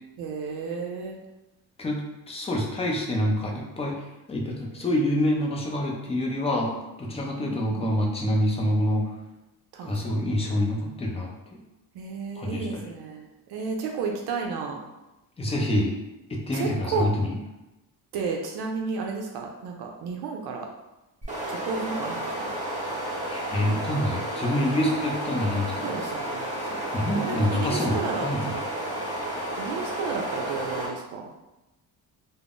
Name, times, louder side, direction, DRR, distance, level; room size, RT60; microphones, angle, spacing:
voice 1, 0.2-1.2 7.4-7.9 9.7-10.2 11.9-14.8 16.5-17.1 18.1-20.7 21.5-22.6 23.6-24.0 25.8-26.5 26.9-28.7 29.6-31.3, right 5 dB, 75° right, 1 dB, 0.5 m, -32 dB
voice 2, 1.8-9.1 9.8-11.6 12.4-12.8 15.4-16.0 16.3-17.4 23.3-26.0 26.9-28.5, left 1 dB, 15° left, -1 dB, 0.4 m, -27 dB
sound 1, 21.2-30.9, right 1 dB, 20° right, 0.7 m, -32 dB
3.5 x 2.0 x 2.4 m, 0.99 s
cardioid pair, 125°, 39 cm